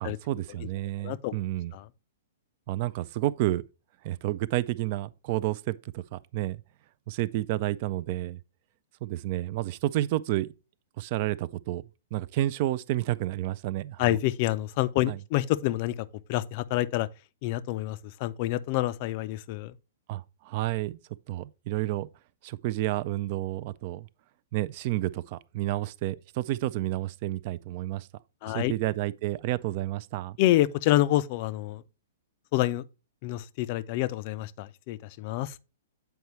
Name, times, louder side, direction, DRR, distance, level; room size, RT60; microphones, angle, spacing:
voice 1, 0.0-1.7 2.7-3.7 4.0-6.6 7.1-8.4 9.0-10.5 11.0-11.8 12.1-14.2 15.1-15.2 20.1-21.0 21.3-22.1 22.4-24.1 24.5-28.1 28.5-30.4, right 15 dB, 45° right, 0.3 m, -30 dB
voice 2, 1.0-1.4 1.7-1.8 14.0-15.9 16.3-17.1 17.4-19.7 28.4-28.7 30.4-31.8 32.5-32.8 33.2-35.5, left 15 dB, 45° left, 0.4 m, -27 dB
7.9 x 4.6 x 3.0 m
figure-of-eight pair, 110°, 0 cm